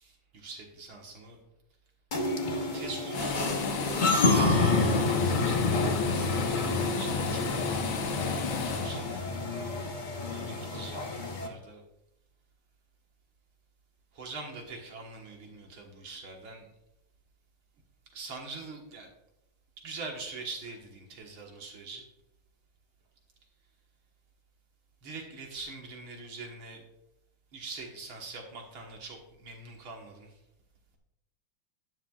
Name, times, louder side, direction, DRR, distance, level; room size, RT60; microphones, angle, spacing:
voice 1, 0.0-1.4 2.7-3.6 4.2-9.2 10.2-11.8 14.1-16.7 18.1-19.1 19.8-22.0 25.0-26.8 27.5-30.4, right 3 dB, 70° right, 1 dB, 2.3 m, -44 dB
sound 1, 2.1-11.5, left 3 dB, 40° left, 0.7 m, -29 dB
sound 2, 3.1-9.3, left 5 dB, 90° left, 2.1 m, -33 dB
12.0 x 10.0 x 2.4 m, 0.84 s
omnidirectional pair, 2.4 m